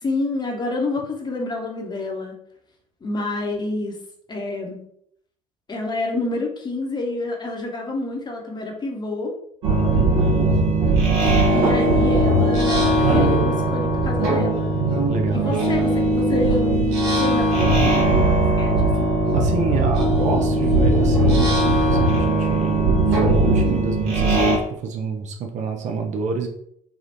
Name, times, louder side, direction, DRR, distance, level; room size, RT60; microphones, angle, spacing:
voice 1, 0.0-2.4 3.0-4.0 4.3-4.8 5.7-9.3 11.5-14.7 15.3-19.1, left 2 dB, 25° left, 1 dB, 0.8 m, -28 dB
sound 1, 9.6-24.6, right 1 dB, 65° right, 1.1 m, -19 dB
voice 2, 9.7-10.0 15.1-15.6 19.3-26.5, right 5 dB, 40° right, 3 dB, 0.5 m, -28 dB
3.4 x 2.4 x 2.7 m, 0.70 s
figure-of-eight pair, 60°, 18 cm